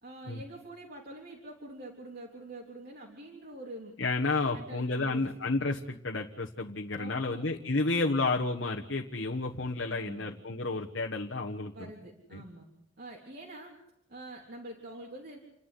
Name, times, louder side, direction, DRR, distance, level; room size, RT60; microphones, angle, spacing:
voice 1, 0.0-4.0 4.5-5.3 7.0-7.4 9.9-10.3 11.7-12.7 13.0-13.8 14.1-15.4, right 1 dB, 50° right, -1 dB, 3.5 m, -45 dB
voice 2, 4.0-11.7 12.3-12.4, left 3 dB, 60° left, 1 dB, 1.4 m, -31 dB
29.0 x 12.0 x 10.0 m, 0.81 s
head